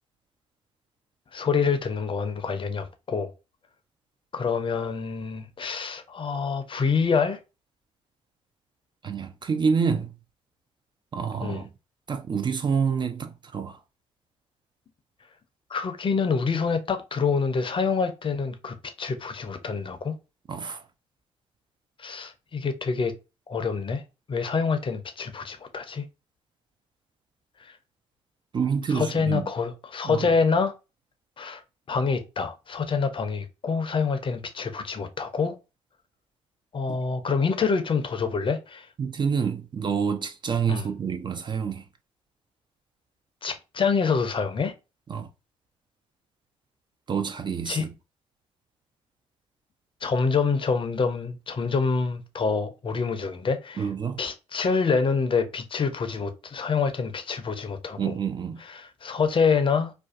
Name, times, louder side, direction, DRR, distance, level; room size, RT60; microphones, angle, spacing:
voice 1, 1.3-3.3 4.3-7.4 11.4-11.7 15.7-20.1 22.0-23.1 23.5-24.0 24.3-26.0 28.9-30.7 31.4-31.6 31.9-35.6 36.7-38.9 40.7-40.9 43.4-44.7 47.7-47.9 50.0-53.9 54.2-58.2 58.7-59.9, left 5 dB, 35° left, 0.5 m, -26 dB
voice 2, 9.0-10.1 11.1-11.7 12.1-13.8 20.5-20.8 28.5-29.5 30.0-30.3 36.9-37.0 39.0-41.8 45.1-45.3 47.1-47.9 53.8-54.2 58.0-58.6, right 6 dB, 35° right, 0.4 m, -27 dB
2.5 x 2.2 x 2.4 m
hypercardioid pair, 50°, 14 cm